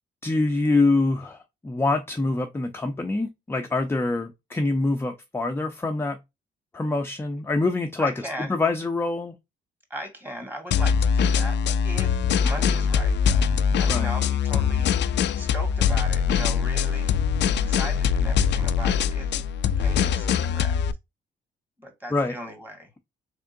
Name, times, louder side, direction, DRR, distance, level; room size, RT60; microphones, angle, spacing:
voice 1, 0.2-6.2 6.7-9.4 13.9-14.1 22.1-22.4, left 3 dB, 10° left, 0.6 m, -25 dB
voice 2, 8.0-8.6 9.9-13.5 13.8-19.3 19.8-20.8 21.8-23.0, equal, 10° right, 1.9 m, -38 dB
sound 1, 10.7-20.9, left 7 dB, 65° left, 0.4 m, -22 dB
3.6 x 3.5 x 2.6 m
cardioid pair, 90°, 20 cm